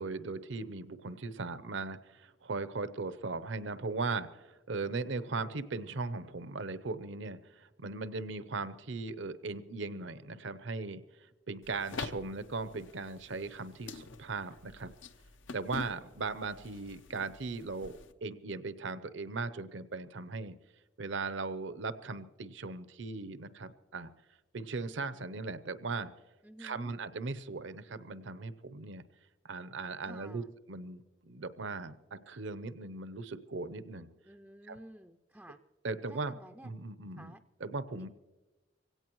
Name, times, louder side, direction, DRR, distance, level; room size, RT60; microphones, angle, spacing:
voice 1, 0.0-11.0 11.5-14.9 15.5-20.5 21.0-24.1 24.5-26.1 26.6-29.0 29.4-34.1 34.7-34.8 35.8-36.3 36.6-37.3 37.6-38.1, right 3 dB, 75° right, 12 dB, 0.7 m, -38 dB
sound 1, 11.6-18.1, left 4 dB, 85° left, 0.8 m, -46 dB
voice 2, 26.4-26.9 30.0-30.5 34.2-35.6 36.1-36.7 37.2-37.4, right 1 dB, 5° right, 8 dB, 0.4 m, -52 dB
23.5 x 17.0 x 3.1 m, 1.1 s
head